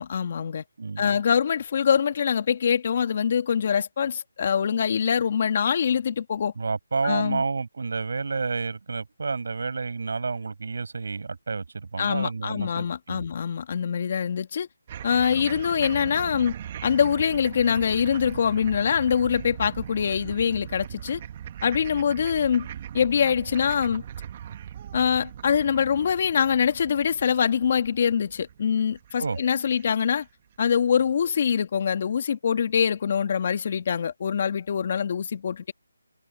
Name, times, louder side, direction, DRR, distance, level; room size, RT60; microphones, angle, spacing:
voice 1, 0.0-0.6 1.0-6.5 7.0-7.4 12.0-14.7 15.0-16.5 16.8-21.2 21.6-22.7 22.9-24.0 24.9-30.3 30.6-35.7, left 7 dB, 40° left, 2.3 m, -24 dB
voice 2, 0.8-1.1 6.6-13.2 29.2-29.4, right 4 dB, 65° right, 6.5 m, -30 dB
sound 1, 14.9-30.2, right 10 dB, 30° right, 1.7 m, -39 dB
figure-of-eight pair, 160°, 0 cm